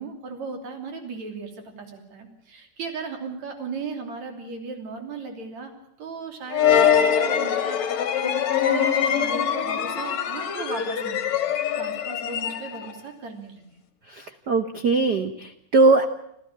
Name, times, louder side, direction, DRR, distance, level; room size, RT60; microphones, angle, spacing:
voice 1, 0.0-5.7 6.0-8.4 8.7-11.4 11.8-13.6, right 4 dB, 60° right, 5 dB, 4.3 m, -36 dB
sound 1, 6.5-13.0, left 8 dB, 65° left, 2.7 m, -23 dB
voice 2, 14.1-16.0, right 3 dB, 90° right, 9 dB, 0.9 m, -20 dB
27.0 x 14.5 x 8.6 m, 0.77 s
omnidirectional pair, 3.6 m